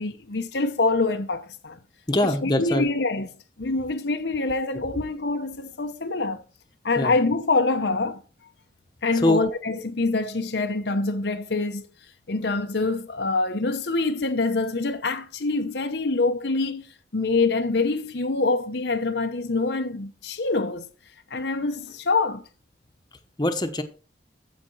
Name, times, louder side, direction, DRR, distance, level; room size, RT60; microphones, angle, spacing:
voice 1, 0.0-1.8 2.4-3.3 3.6-6.4 6.8-8.2 9.0-11.9 12.3-16.9 17.1-20.9 21.3-22.4, left 3 dB, 65° left, 0.9 m, -25 dB
voice 2, 2.1-2.9 7.0-7.1 9.1-9.4 23.4-23.8, left 1 dB, 25° left, 1.1 m, -23 dB
14.5 x 5.2 x 4.6 m
head